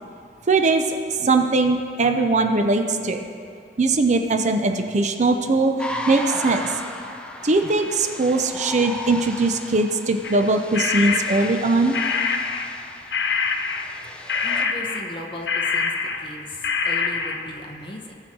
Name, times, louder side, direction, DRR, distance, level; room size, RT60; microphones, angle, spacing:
voice 1, 0.5-3.3 3.8-5.7 6.1-6.7 7.4-12.0, right 3 dB, 40° right, 6 dB, 0.6 m, -20 dB
sound 1, 5.8-14.7, left 1 dB, 5° left, 0.6 m, -36 dB
sound 2, 10.2-12.9 13.1-16.4 16.6-17.6, left 5 dB, 70° left, 0.7 m, -25 dB
voice 2, 14.4-15.9 16.2-18.1, left 1 dB, 30° left, 1 dB, 1.1 m, -37 dB
18.5 x 6.3 x 3.8 m, 2.4 s
head